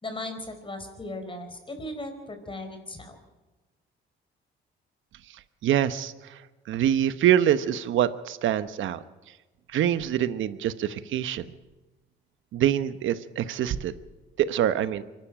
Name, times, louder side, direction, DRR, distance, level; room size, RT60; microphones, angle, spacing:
voice 1, 0.0-3.1, left 1 dB, 25° left, 6 dB, 4.6 m, -37 dB
voice 2, 5.6-6.4 6.7-9.0 9.7-11.4 12.5-13.9 14.4-15.0, right 10 dB, 75° right, 13 dB, 1.0 m, -25 dB
24.5 x 12.0 x 9.0 m, 1.2 s
cardioid pair, 90°, 20 cm